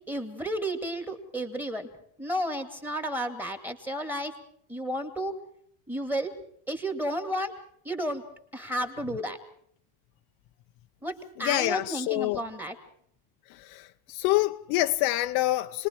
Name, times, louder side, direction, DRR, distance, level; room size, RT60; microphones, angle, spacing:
voice 1, 0.0-1.9 2.2-4.3 4.7-5.4 5.9-6.4 6.7-7.5 7.8-8.2 8.5-9.4 11.0-12.8, equal, 5° right, 2.2 m, -32 dB
voice 2, 11.4-12.4 13.5-15.9, left 17 dB, 50° left, 0.8 m, -27 dB
29.5 x 21.0 x 4.5 m
cardioid pair, 180°, 46 cm